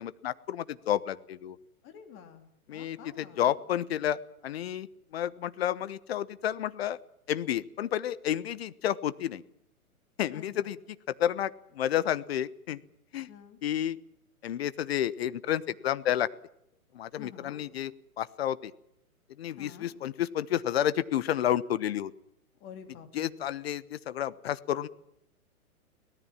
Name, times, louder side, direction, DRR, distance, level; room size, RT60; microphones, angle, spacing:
voice 1, 0.0-1.6 2.7-4.2 4.4-4.9 5.1-7.0 7.3-9.4 10.2-10.8 11.2-11.5 11.8-12.8 13.1-13.3 13.6-14.0 14.4-16.3 16.9-17.9 18.2-18.7 19.4-22.1 23.1-24.9, left 11 dB, 45° left, 17 dB, 1.1 m, -30 dB
voice 2, 1.8-3.6 10.3-10.8 13.3-13.6 17.2-17.6 19.6-19.9 22.6-23.4, left 8 dB, 25° left, 6 dB, 3.3 m, -49 dB
24.5 x 18.5 x 7.4 m, 0.74 s
figure-of-eight pair, 125°, 44 cm